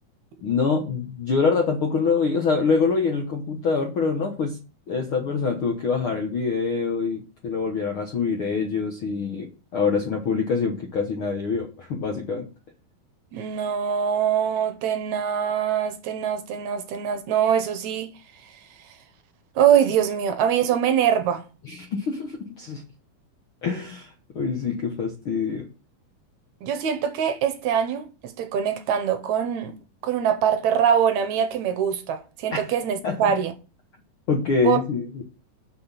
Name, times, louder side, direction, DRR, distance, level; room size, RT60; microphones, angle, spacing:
voice 1, 0.4-4.6 4.9-12.5 21.6-22.8 23.6-25.7 32.5-32.6 33.0-33.2 34.3-35.2, left 5 dB, 65° left, 1.3 m, -25 dB
voice 2, 13.3-18.1 19.6-21.5 26.6-28.1 28.4-29.8 30.0-33.5 34.6-34.8, right 8 dB, 70° right, 1.9 m, -23 dB
6.1 x 6.1 x 7.3 m
omnidirectional pair, 4.2 m